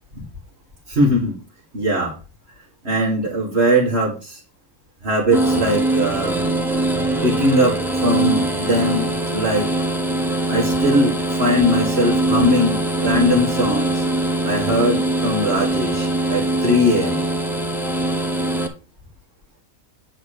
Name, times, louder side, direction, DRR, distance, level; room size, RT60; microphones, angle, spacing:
voice 1, 0.9-1.4 1.7-2.1 2.8-4.4 5.0-6.4 7.2-9.7 10.5-14.0 14.4-17.2, equal, 50° right, -3 dB, 2.2 m, -20 dB
sound 1, 5.3-18.7, right 2 dB, ahead, 1.3 m, -22 dB
9.6 x 4.0 x 6.5 m, 0.33 s
omnidirectional pair, 1.4 m